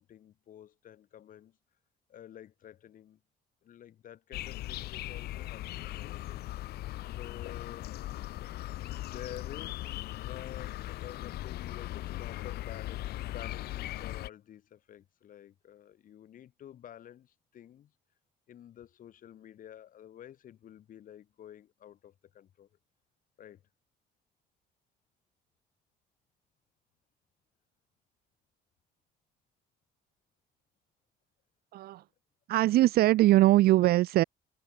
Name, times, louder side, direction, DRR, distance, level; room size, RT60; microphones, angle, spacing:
voice 1, 0.0-1.6 2.1-3.2 3.6-6.5 7.1-8.0 9.1-17.9 18.5-22.7 23.4-23.6, left 10 dB, 55° left, 1.6 m, -50 dB
sound 1, 4.3-14.3, left 16 dB, 70° left, 0.7 m, -39 dB
voice 2, 31.7-32.0 32.5-34.2, right 16 dB, 65° right, 0.5 m, -22 dB
cardioid pair, 110°, 17 cm